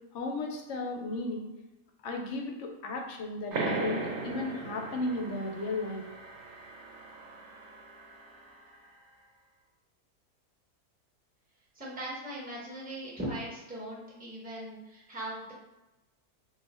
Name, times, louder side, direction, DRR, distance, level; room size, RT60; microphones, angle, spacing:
voice 1, 0.1-1.5 2.0-6.0, left 2 dB, 70° left, 2 dB, 0.7 m, -35 dB
sound 1, 3.5-8.7, right 3 dB, 65° right, 0.7 m, -38 dB
voice 2, 11.7-15.5, right 1 dB, 10° right, -5 dB, 0.5 m, -39 dB
2.5 x 2.4 x 4.1 m, 1.0 s
omnidirectional pair, 1.6 m